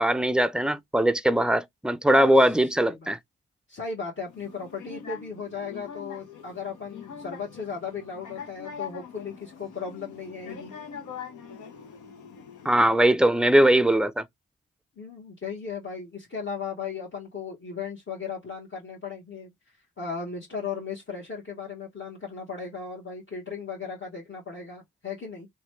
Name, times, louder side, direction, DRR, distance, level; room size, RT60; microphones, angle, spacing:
voice 1, 0.0-3.2 12.7-14.2, right 1 dB, 5° right, 0.4 m, -21 dB
voice 2, 2.1-2.5 2.8-3.1 3.7-10.7 15.0-25.5, left 5 dB, 40° left, 1.2 m, -36 dB
sound 1, 4.3-13.0, left 7 dB, 75° left, 0.7 m, -43 dB
3.0 x 2.2 x 3.1 m
supercardioid pair, 40°, 30 cm